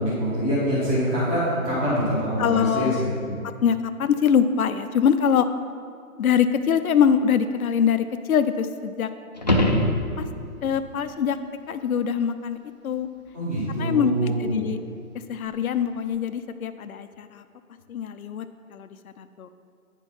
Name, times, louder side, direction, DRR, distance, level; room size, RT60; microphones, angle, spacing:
voice 1, 0.0-3.3 13.3-14.6, equal, 10° right, -15 dB, 0.9 m, -25 dB
voice 2, 2.4-3.0 3.6-5.5 6.2-9.1 10.2-10.3 10.6-11.4 11.7-12.6 12.8-13.1 13.8-14.8 15.3-17.4 17.9-18.4 18.7-18.9 19.2-19.5, left 7 dB, 75° left, 9 dB, 0.6 m, -23 dB
sound 1, 9.4-10.6 15.5-15.6, left 1 dB, 30° left, 0.5 m, -22 dB
9.6 x 4.5 x 5.8 m, 2.3 s
hypercardioid pair, 170°, 43 cm